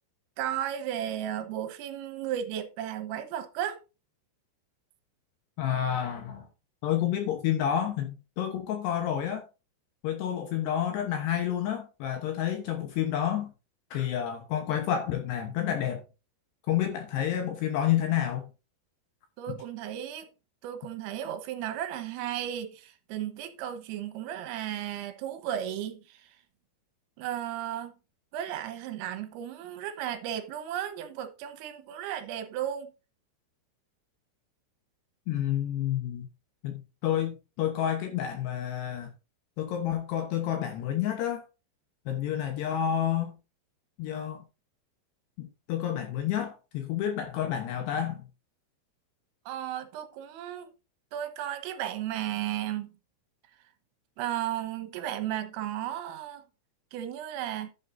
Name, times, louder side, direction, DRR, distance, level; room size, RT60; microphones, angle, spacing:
voice 1, 0.4-3.8 19.4-20.3 20.6-26.4 27.2-27.9 28.3-32.9 49.5-50.7 51.1-52.9 54.2-56.4 56.9-57.7, right 11 dB, 80° right, 3.7 m, -34 dB
voice 2, 5.6-6.5 6.8-9.4 10.0-13.5 13.9-16.0 16.7-18.5 19.5-19.6 35.3-36.3 36.6-39.1 39.6-41.4 42.1-43.4 44.0-44.4 45.4-48.2, left 10 dB, 75° left, 2.6 m, -29 dB
11.0 x 10.0 x 2.6 m
omnidirectional pair, 6.0 m